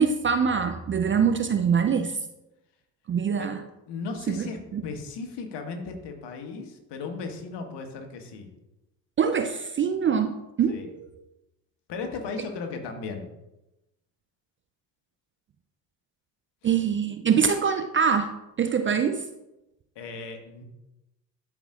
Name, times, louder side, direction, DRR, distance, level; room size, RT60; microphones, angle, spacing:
voice 1, 0.0-2.2 3.1-3.6 4.3-4.8 9.2-11.1 16.6-19.2, right 6 dB, 25° right, 7 dB, 0.5 m, -24 dB
voice 2, 3.9-8.5 10.7-10.9 11.9-13.3 16.6-16.7 19.9-20.6, left 4 dB, 55° left, 4 dB, 1.5 m, -36 dB
12.5 x 4.8 x 2.5 m, 0.95 s
hypercardioid pair, 55°, 50 cm